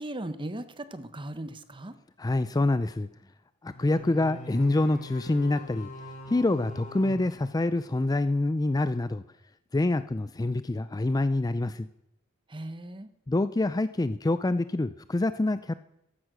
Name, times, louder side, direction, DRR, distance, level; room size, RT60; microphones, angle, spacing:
voice 1, 0.0-2.0 12.5-13.1, right 1 dB, 25° right, 12 dB, 1.0 m, -37 dB
voice 2, 2.2-3.1 3.6-5.9 6.3-9.2 9.7-11.9 13.3-15.7, left 2 dB, 20° left, 13 dB, 0.4 m, -26 dB
sound 1, 3.7-8.2, left 2 dB, 35° left, 5.7 m, -44 dB
14.5 x 11.0 x 6.2 m, 0.83 s
head